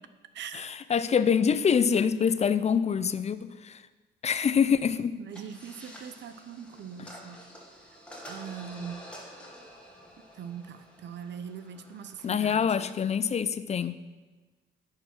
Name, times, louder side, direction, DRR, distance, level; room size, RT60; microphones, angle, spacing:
voice 1, 0.5-3.8 4.2-5.2 12.2-14.0, left 7 dB, 35° left, 0.4 m, -25 dB
voice 2, 5.2-7.4 8.3-9.0 10.3-12.7, right 7 dB, 60° right, 0.7 m, -41 dB
sound 1, 5.3-12.4, equal, 5° left, 1.9 m, -49 dB
9.7 x 4.7 x 5.9 m
cardioid pair, 90°, 20 cm